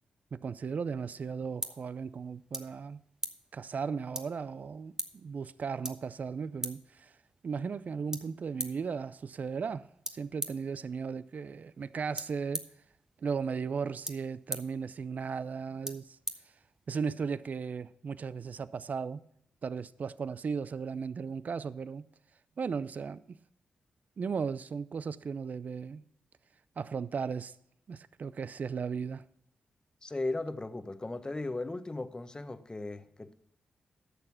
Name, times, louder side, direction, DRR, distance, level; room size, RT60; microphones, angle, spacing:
voice 1, 0.3-3.0 3.5-7.1 7.4-12.7 13.2-16.2 16.9-19.2 19.6-22.1 22.6-23.4 24.2-26.0 26.8-27.5 27.9-29.2, right 5 dB, 55° right, 0.5 m, -36 dB
sound 1, 0.9-17.1, right 1 dB, 20° right, 1.1 m, -44 dB
voice 2, 30.0-33.3, left 2 dB, 25° left, 0.9 m, -36 dB
11.0 x 6.7 x 5.7 m
cardioid pair, 55°, 3 cm